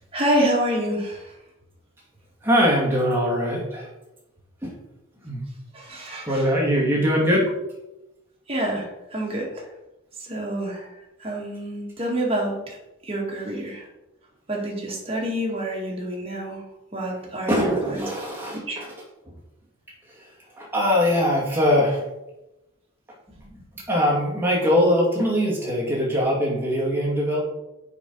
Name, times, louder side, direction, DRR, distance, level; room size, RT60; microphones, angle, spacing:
voice 1, 0.1-1.4 5.7-6.6 8.5-9.7 10.2-10.9 11.2-12.8 13.0-13.9 14.5-16.6 16.9-18.1 18.5-18.8, right 1 dB, 25° right, -3 dB, 2.1 m, -27 dB
voice 2, 2.4-3.9 4.6-4.7 5.2-5.4 6.2-7.5 17.5-18.9 20.5-22.0 23.9-27.4, equal, 10° right, -4 dB, 2.2 m, -22 dB
7.0 x 5.4 x 5.5 m, 0.96 s
head